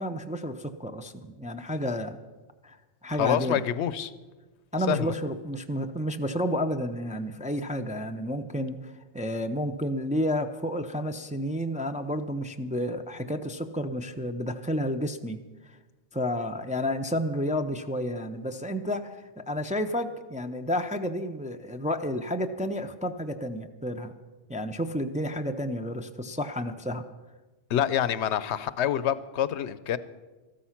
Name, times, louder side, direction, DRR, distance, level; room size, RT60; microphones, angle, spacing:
voice 1, 0.0-2.2 2.6-2.8 3.0-3.6 4.7-15.4 16.1-24.1 24.5-27.0, equal, 10° right, 6 dB, 0.4 m, -31 dB
voice 2, 3.2-4.1 4.9-5.1 27.7-30.0, left 10 dB, 85° left, 16 dB, 0.9 m, -26 dB
14.0 x 12.5 x 5.8 m, 1.2 s
omnidirectional pair, 1.1 m